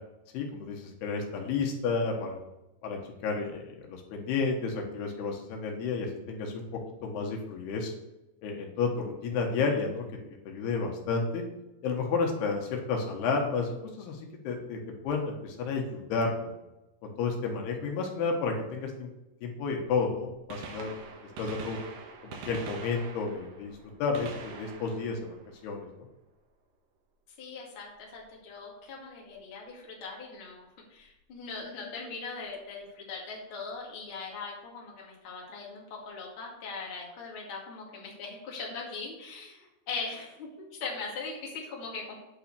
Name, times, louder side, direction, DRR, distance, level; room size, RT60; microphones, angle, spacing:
voice 1, 0.3-2.4 2.8-6.7 7.0-7.9 8.4-11.4 11.8-16.5 17.0-19.1 19.4-20.9 21.4-21.8 22.2-23.7 24.0-25.3 25.6-26.1, left 4 dB, 80° left, 2 dB, 3.3 m, -31 dB
Gunshot gunfire, 20.4-26.2 28.2-28.3 29.3-29.4 31.0-31.1 32.5-32.6 32.8-32.9, right 5 dB, 80° right, 3.3 m, -44 dB
voice 2, 27.4-42.1, left 4 dB, 40° left, -3 dB, 2.5 m, -40 dB
8.9 x 5.7 x 6.7 m, 0.94 s
omnidirectional pair, 4.6 m